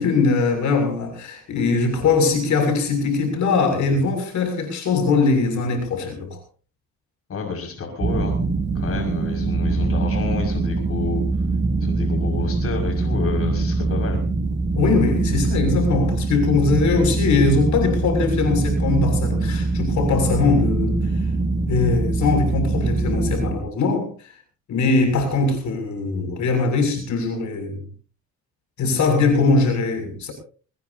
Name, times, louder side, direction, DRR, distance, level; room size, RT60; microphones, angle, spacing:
voice 1, 0.0-6.4 14.7-21.0 21.7-24.1 24.7-27.8 28.8-30.3, left 4 dB, 70° left, 6 dB, 6.9 m, -21 dB
voice 2, 7.3-8.4 8.7-11.2 11.8-14.2, left 4 dB, 50° left, 2 dB, 5.9 m, -29 dB
sound 1, 8.0-23.6, right 3 dB, 35° right, 2.9 m, -23 dB
22.5 x 20.5 x 2.8 m, 0.40 s
cardioid pair, 90°, 30 cm